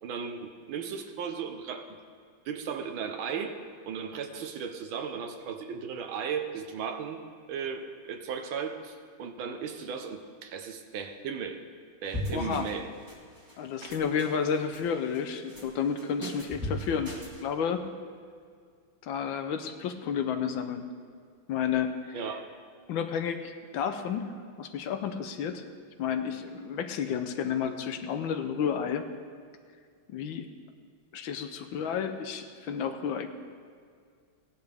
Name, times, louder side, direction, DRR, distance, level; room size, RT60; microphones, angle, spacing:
voice 1, 0.0-2.0 2.4-3.6 3.8-7.2 7.5-11.6 12.0-12.9 13.8-14.0 22.1-22.5, right 6 dB, 80° right, 7 dB, 1.7 m, -36 dB
sound 1, 12.1-12.8 13.1-13.6 13.9-14.8 15.1-15.6 16.0-17.4, left 1 dB, 10° right, 1.3 m, -37 dB
voice 2, 12.3-12.7 13.6-17.1 17.4-17.8 19.0-20.9 21.5-22.2 22.9-24.3 24.6-25.6 26.0-29.1 30.1-30.5 31.1-33.3, left 7 dB, 75° left, 8 dB, 1.4 m, -31 dB
17.0 x 10.5 x 3.4 m, 2.1 s
omnidirectional pair, 2.2 m